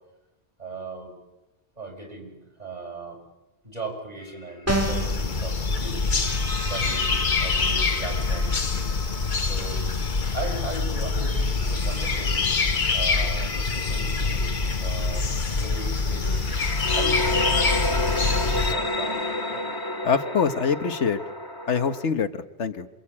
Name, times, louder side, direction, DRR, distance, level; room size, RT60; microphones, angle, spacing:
voice 1, 0.6-1.2 1.8-3.2 3.6-6.2 6.6-8.7 9.3-9.9 10.3-12.4 12.9-14.5 14.8-16.5 16.9-19.7, right 2 dB, 35° right, 1 dB, 7.3 m, -38 dB
sound 1, 4.2-4.5 6.0-10.8 11.6-22.0, left 2 dB, 20° left, 1.9 m, -32 dB
sound 2, 4.7-18.7, left 4 dB, 45° left, 1.3 m, -25 dB
sound 3, 4.7-5.2, right 2 dB, 15° right, 1.7 m, -25 dB
voice 2, 20.0-21.2 21.7-22.9, left 6 dB, 85° left, 8 dB, 1.5 m, -24 dB
27.5 x 24.0 x 8.6 m, 0.99 s
omnidirectional pair, 1.2 m